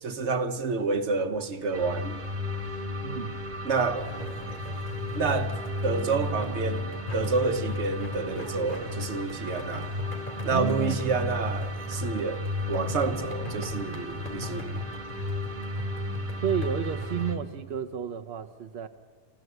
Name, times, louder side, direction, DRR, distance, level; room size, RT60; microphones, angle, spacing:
voice 1, 0.0-2.2 3.6-4.1 5.1-5.5 5.8-9.9 10.4-12.4 12.7-14.8, right 4 dB, 85° right, 1.5 m, -29 dB
sound 1, 1.7-17.4, left 1 dB, 45° right, 1.9 m, -34 dB
sound 2, 4.0-17.2, left 1 dB, 50° left, 3.4 m, -42 dB
voice 2, 10.5-11.0 16.4-18.9, right 8 dB, 70° right, 1.1 m, -31 dB
29.5 x 14.5 x 8.0 m
omnidirectional pair, 1.1 m